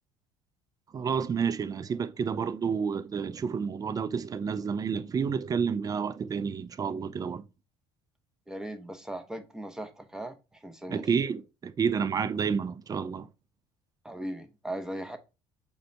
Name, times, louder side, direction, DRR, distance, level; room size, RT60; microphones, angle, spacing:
voice 1, 0.9-7.4 10.9-13.3, right 6 dB, 25° right, 0.4 m, -30 dB
voice 2, 8.5-11.1 14.0-15.2, right 1 dB, 5° right, 0.8 m, -38 dB
5.1 x 2.3 x 4.1 m
hypercardioid pair, 70°, 14 cm